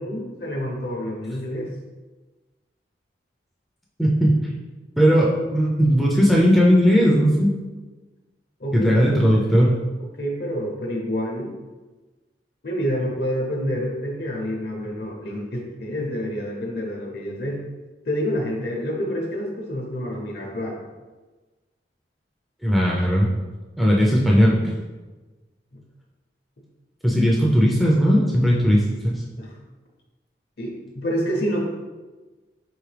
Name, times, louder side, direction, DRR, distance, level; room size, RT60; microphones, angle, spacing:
voice 1, 0.0-1.7 8.6-8.9 9.3-9.6 10.0-11.5 12.6-17.6 18.1-20.8 29.4-29.6 30.6-31.6, equal, 60° left, -1 dB, 0.7 m, -28 dB
voice 2, 4.0-4.4 5.0-7.5 8.7-9.8 22.6-23.3 23.8-24.6 27.0-29.2, equal, ahead, -4 dB, 0.4 m, -17 dB
4.7 x 3.1 x 3.3 m, 1.2 s
head